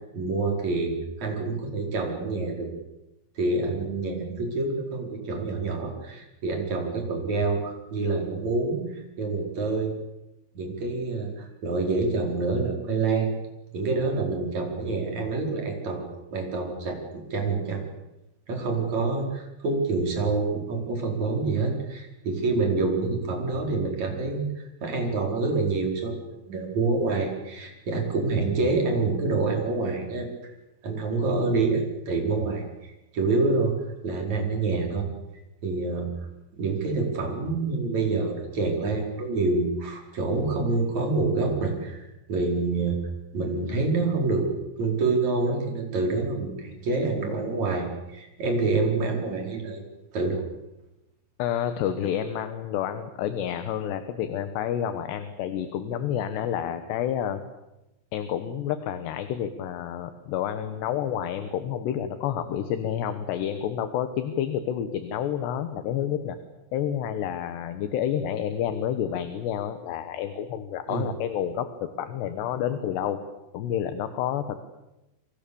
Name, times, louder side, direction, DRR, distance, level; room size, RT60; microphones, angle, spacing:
voice 1, 0.1-2.7 3.4-9.9 10.5-13.3 13.7-17.8 18.5-30.5 30.8-32.6 33.1-33.7 34.0-35.1 35.6-36.1 36.6-42.0 42.3-43.0 43.3-44.5 44.8-49.8 50.1-50.4 70.9-71.1, right 3 dB, 35° right, 2 dB, 5.6 m, -27 dB
voice 2, 51.4-57.4 58.1-66.4 66.7-73.2 73.5-74.6, left 9 dB, 70° left, 9 dB, 3.1 m, -29 dB
29.0 x 24.5 x 7.1 m, 0.94 s
omnidirectional pair, 5.8 m